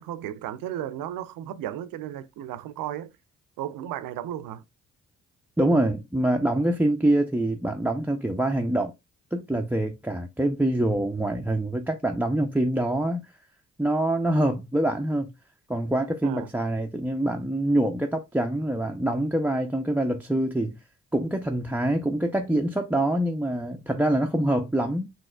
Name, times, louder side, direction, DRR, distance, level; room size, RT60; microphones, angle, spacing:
voice 1, 0.0-3.1 3.6-4.6 16.2-16.5, right 11 dB, 65° right, 0.6 m, -34 dB
voice 2, 5.6-8.9 9.3-13.3 13.8-15.3 15.7-20.8 21.1-25.1, right 1 dB, 5° right, 0.4 m, -25 dB
5.3 x 2.9 x 2.2 m
hypercardioid pair, 40°, 37 cm